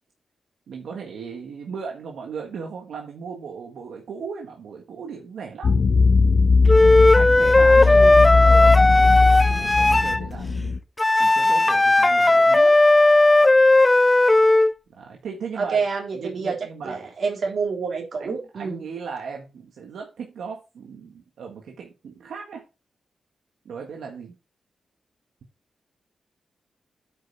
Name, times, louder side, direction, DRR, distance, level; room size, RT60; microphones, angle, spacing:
voice 1, 0.7-5.7 7.1-10.7 11.2-12.8 14.9-15.8 16.1-17.0 18.2-22.6 23.6-24.4, right 6 dB, 90° right, 1.6 m, -37 dB
sound 1, 5.6-10.8, left 4 dB, 60° left, 0.8 m, -19 dB
Wind instrument woodwind instrument, 6.7-10.2 11.0-14.7, left 2 dB, 20° left, 0.4 m, -16 dB
voice 2, 7.7-8.2 15.6-16.6 16.8-18.8, right 5 dB, 60° right, 3.6 m, -28 dB
8.8 x 5.6 x 4.8 m
cardioid pair, 90°, 0 cm